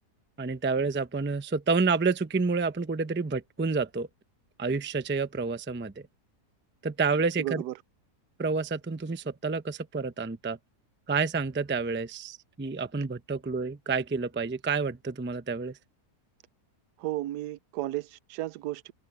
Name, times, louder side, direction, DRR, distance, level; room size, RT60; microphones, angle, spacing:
voice 1, 0.4-4.1 4.6-6.0 6.8-7.6 8.4-10.6 11.1-15.8, right 4 dB, 15° right, 0.4 m, -29 dB
voice 2, 7.1-7.7 17.0-18.9, right 15 dB, 85° right, 1.1 m, -34 dB
omnidirectional pair, 1.7 m